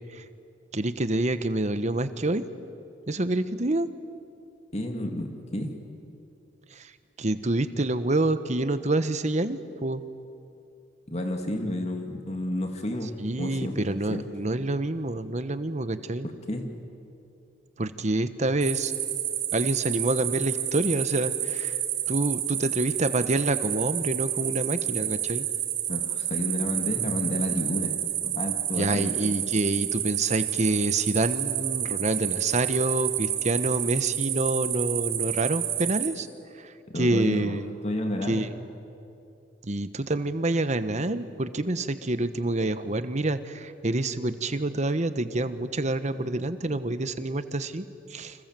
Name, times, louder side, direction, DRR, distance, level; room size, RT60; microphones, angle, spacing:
voice 1, 0.7-2.5 3.1-3.9 6.7-6.9 7.2-10.0 13.2-16.3 17.8-18.9 19.5-21.8 22.1-25.5 28.8-36.3 36.5-37.6 38.3-38.6 39.6-48.5, right 2 dB, 40° right, 11 dB, 1.1 m, -27 dB
voice 2, 4.7-5.8 11.1-13.1 13.4-13.8 14.1-14.2 16.5-16.7 25.9-27.9 28.2-29.1 36.9-38.4, left 1 dB, 35° left, 4 dB, 2.5 m, -30 dB
sound 1, 18.6-36.1, right 11 dB, 75° right, 4.5 m, -29 dB
29.5 x 26.5 x 7.7 m, 2.6 s
head